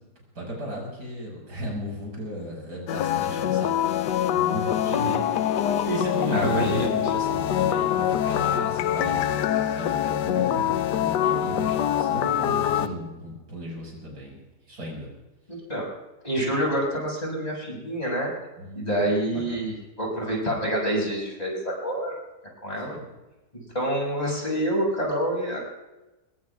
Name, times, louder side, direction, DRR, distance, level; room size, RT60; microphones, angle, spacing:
voice 1, 0.3-3.8 4.3-5.1 5.6-6.9 7.1-14.4 14.7-15.1 18.6-19.0 19.3-19.6 22.9-23.1, right 1 dB, 75° right, -2 dB, 6.6 m, -35 dB
sound 1, 2.9-12.9, left 10 dB, 90° left, 1.3 m, -24 dB
voice 2, 4.9-5.3 6.3-7.1 15.5-15.9 16.2-18.3 18.7-22.2 22.6-23.0 23.7-25.6, right 1 dB, 20° left, -3 dB, 6.6 m, -27 dB
24.5 x 22.0 x 2.4 m, 1.0 s
omnidirectional pair, 1.8 m